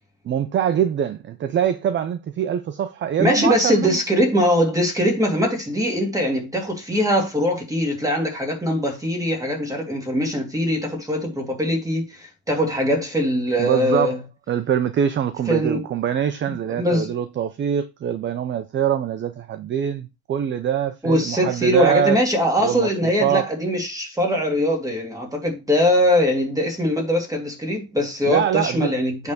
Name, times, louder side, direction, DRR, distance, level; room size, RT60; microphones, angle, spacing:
voice 1, 0.2-4.0 13.6-14.2 14.5-22.2 22.6-23.5 28.2-28.9, right 9 dB, 25° right, 0.4 m, -23 dB
voice 2, 3.2-14.2 15.5-15.8 16.7-17.1 21.0-29.3, equal, 5° right, 2.5 m, -21 dB
8.3 x 3.5 x 6.5 m
cardioid pair, 160°, 46 cm